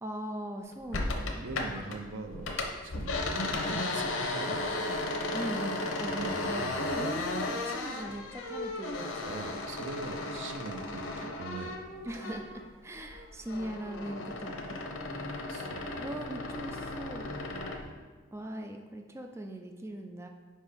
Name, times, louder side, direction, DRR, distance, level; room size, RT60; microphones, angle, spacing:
voice 1, 0.0-1.4 5.3-6.6 6.9-9.4 12.0-14.8 16.0-17.3 18.3-20.3, right 1 dB, 15° right, 4 dB, 0.3 m, -40 dB
sound 1, 0.9-2.0 2.3-12.7 13.0-17.8, left 2 dB, 90° left, 0.8 m, -35 dB
voice 2, 0.9-5.0 6.1-7.3 8.0-8.2 9.2-11.8 15.5-15.9, right 3 dB, 70° right, 6 dB, 0.6 m, -43 dB
4.9 x 4.4 x 5.1 m, 1.4 s
head